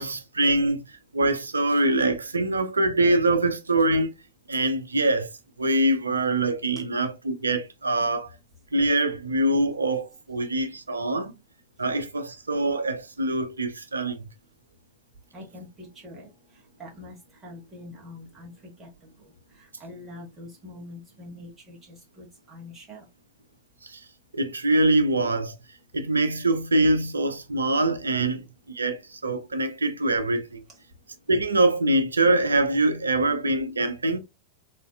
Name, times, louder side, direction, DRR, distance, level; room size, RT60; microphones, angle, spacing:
voice 1, 0.0-4.1 4.5-5.3 5.6-8.3 8.7-11.3 11.8-14.3 23.8-24.0 24.3-25.5 25.9-30.6 31.3-34.2, right 2 dB, 75° right, 0.6 m, -24 dB
voice 2, 15.3-16.3 16.8-17.1 17.4-18.9 19.6-23.0, left 2 dB, 15° right, 1.6 m, -44 dB
4.0 x 3.9 x 2.5 m
figure-of-eight pair, 90°, 0 cm